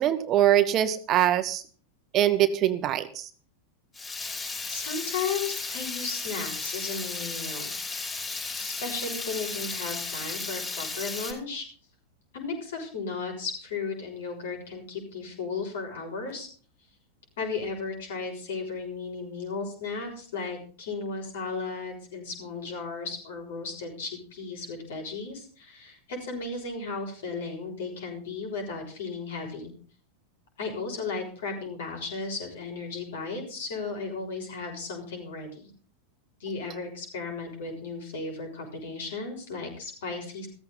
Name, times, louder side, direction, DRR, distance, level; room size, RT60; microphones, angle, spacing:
voice 1, 0.0-1.6 2.1-3.3, right 12 dB, 35° right, 11 dB, 1.2 m, -23 dB
Water tap faucet / Liquid, 3.9-11.3, left 3 dB, 15° left, 5.5 m, -34 dB
voice 2, 4.2-8.1 8.6-11.6 12.3-16.5 17.4-29.7 30.6-35.7 36.4-40.5, left 4 dB, 60° left, 2 dB, 6.5 m, -35 dB
15.5 x 14.5 x 4.1 m, 0.42 s
figure-of-eight pair, 90°, 0 cm